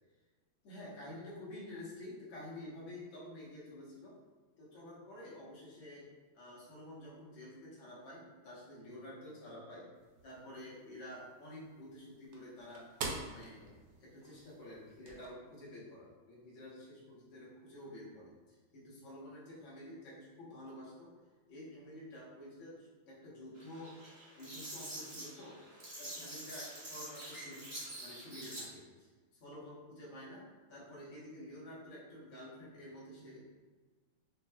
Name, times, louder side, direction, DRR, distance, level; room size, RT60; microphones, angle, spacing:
voice 1, 0.6-4.2 4.6-6.1 6.4-9.9 10.2-12.9 13.2-13.7 14.0-21.1 21.5-24.0 24.4-25.6 26.0-29.1 29.4-33.7, left 1 dB, 75° left, -6 dB, 1.8 m, -50 dB
sound 1, 9.9-15.3, right 3 dB, 70° right, 1.0 m, -47 dB
sound 2, 23.6-28.6, right 1 dB, 25° right, 0.6 m, -47 dB
5.9 x 2.1 x 2.2 m, 1.4 s
omnidirectional pair, 2.1 m